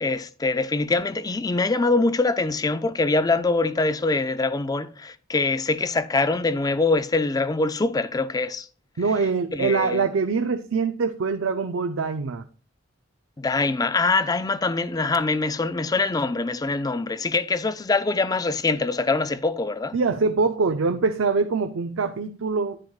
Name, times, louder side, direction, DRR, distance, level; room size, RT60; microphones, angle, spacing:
voice 1, 0.0-8.7 9.5-10.0 13.4-20.0, left 3 dB, 20° left, 0.4 m, -24 dB
voice 2, 9.0-12.4 19.9-22.8, right 4 dB, 90° right, 0.5 m, -24 dB
10.5 x 7.5 x 2.4 m
head